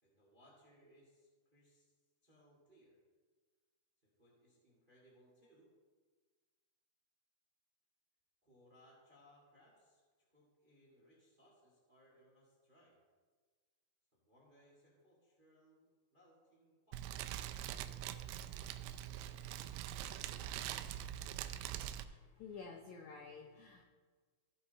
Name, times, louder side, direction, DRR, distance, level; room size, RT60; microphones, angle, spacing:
voice 1, 0.0-1.9 2.2-3.0 4.2-5.7 8.4-10.0 10.3-13.0 14.2-17.0 17.7-19.9, equal, 25° right, -4 dB, 1.1 m, -68 dB
Fire, 16.9-22.0, right 12 dB, 90° right, 2.5 m, -43 dB
voice 2, 21.8-23.8, left 5 dB, 90° left, 2 dB, 1.6 m, -52 dB
15.5 x 5.6 x 4.1 m, 1.5 s
omnidirectional pair, 4.4 m